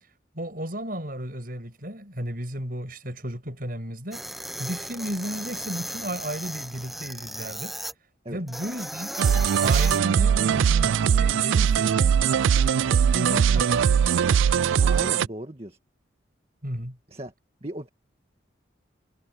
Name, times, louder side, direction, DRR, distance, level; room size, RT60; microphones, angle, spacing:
voice 1, 0.3-4.2 4.6-7.8 8.3-9.1 9.6-12.1 13.1-14.0 16.6-17.0, right 1 dB, 45° right, 7.7 m, -34 dB
sound 1, 4.1-7.9 8.5-10.0, equal, ahead, 0.9 m, -36 dB
sound 2, 9.2-15.3, right 7 dB, 85° right, 0.3 m, -21 dB
voice 2, 14.8-15.8 17.1-17.3 17.6-17.9, right 1 dB, 30° right, 1.9 m, -37 dB
head